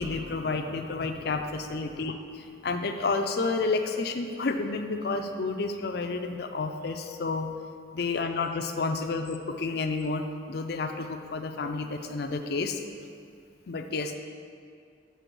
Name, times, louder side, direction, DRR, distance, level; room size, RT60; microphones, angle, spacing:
voice 1, 0.0-2.1 2.6-7.5 7.9-12.8 13.7-14.1, left 3 dB, 55° left, 5 dB, 0.4 m, -30 dB
6.8 x 4.5 x 6.1 m, 2.3 s
head